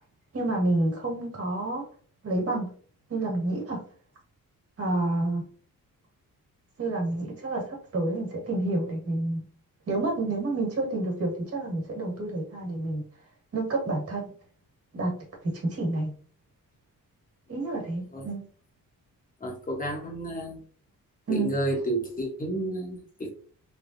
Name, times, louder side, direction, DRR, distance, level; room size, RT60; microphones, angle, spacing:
voice 1, 0.3-1.8 2.2-2.7 3.1-3.8 4.8-5.4 6.8-9.4 9.9-13.0 13.5-14.3 14.9-15.1 15.4-16.1 17.5-18.4 21.3-21.5, right 2 dB, 45° right, -1 dB, 1.6 m, -29 dB
voice 2, 19.4-20.6 21.3-23.3, right 1 dB, 25° left, -1 dB, 1.1 m, -31 dB
3.4 x 3.4 x 2.6 m, 0.44 s
wide cardioid pair, 165°, 34 cm